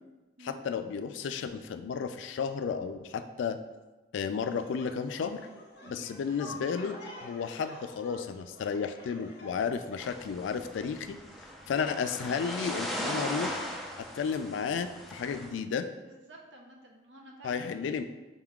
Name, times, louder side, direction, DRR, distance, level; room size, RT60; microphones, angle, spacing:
voice 1, 0.4-3.6 4.1-5.5 5.9-11.2 11.7-13.6 14.0-15.9 17.4-18.0, left 6 dB, 85° left, 9 dB, 0.3 m, -33 dB
sound 1, 4.5-10.1, left 1 dB, 65° left, 0.8 m, -48 dB
sound 2, 10.0-15.5, equal, ahead, 0.5 m, -38 dB
voice 2, 16.1-18.0, right 1 dB, 75° right, 0 dB, 0.7 m, -51 dB
5.3 x 3.6 x 2.3 m, 1.1 s
head